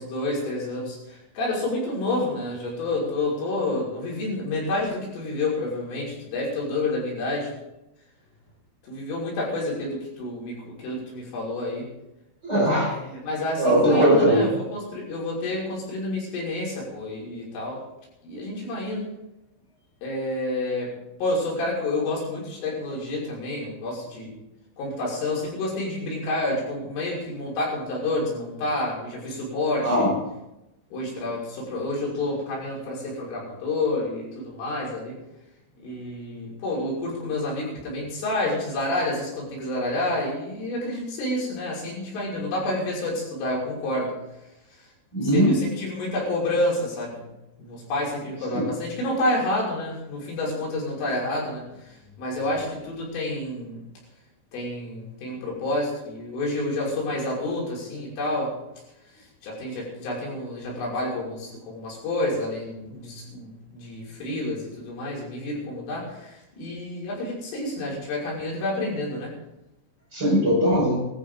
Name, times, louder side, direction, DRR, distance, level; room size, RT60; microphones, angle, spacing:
voice 1, 0.0-7.5 8.9-11.9 12.9-17.8 18.2-19.1 20.0-20.9 21.2-24.4 24.8-30.1 30.9-35.2 35.8-44.1 45.2-47.3 47.6-53.8 54.5-58.5 59.4-69.3, left 2 dB, 75° left, -4 dB, 8.1 m, -29 dB
voice 2, 12.4-12.9 13.6-14.5 29.8-30.1 45.1-45.6 48.5-48.7 70.1-71.0, equal, 20° right, -4 dB, 5.8 m, -20 dB
21.5 x 14.0 x 3.9 m, 0.93 s
omnidirectional pair, 5.7 m